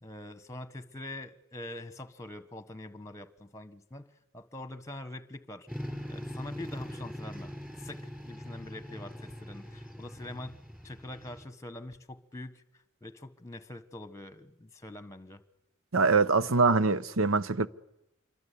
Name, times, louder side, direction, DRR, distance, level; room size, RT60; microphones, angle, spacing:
voice 1, 0.0-4.1 4.3-5.7 6.1-10.6 10.8-12.6 13.0-15.4, left 1 dB, 15° left, 1.4 m, -44 dB
sound 1, 5.7-11.5, equal, 5° right, 5.0 m, -42 dB
voice 2, 15.9-17.7, right 4 dB, 70° right, 0.9 m, -24 dB
27.0 x 23.5 x 8.5 m
head